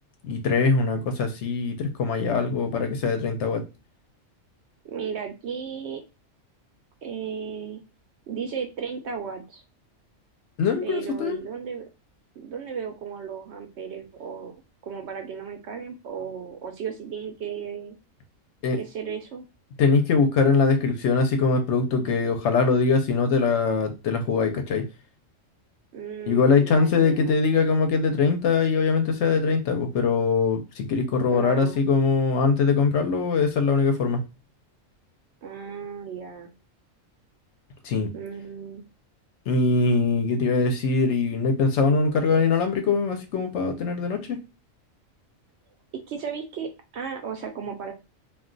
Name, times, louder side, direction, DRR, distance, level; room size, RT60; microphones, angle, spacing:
voice 1, 0.2-3.6 10.6-11.4 18.6-18.8 19.8-24.9 26.3-34.2 37.8-38.1 39.5-44.4, left 4 dB, 65° left, 0.8 m, -22 dB
voice 2, 4.8-6.0 7.0-7.8 8.3-9.6 10.8-11.9 12.4-14.6 14.8-18.0 18.8-19.4 25.9-27.4 31.3-31.8 35.4-36.5 38.1-38.8 46.1-47.9, right 6 dB, 65° right, 0.7 m, -35 dB
2.4 x 2.3 x 3.7 m
omnidirectional pair, 1.4 m